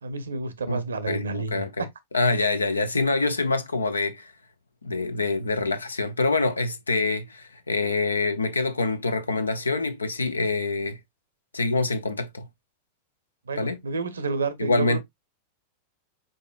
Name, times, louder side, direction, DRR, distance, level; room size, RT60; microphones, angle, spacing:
voice 1, 0.0-1.9 13.5-15.0, right 3 dB, 70° right, 0.8 m, -30 dB
voice 2, 1.1-1.9 2.1-4.3 4.8-11.0 11.5-12.4 13.6-13.8 14.6-15.0, left 3 dB, 75° left, 0.6 m, -25 dB
5.2 x 4.2 x 2.3 m
figure-of-eight pair, 90°, 0 cm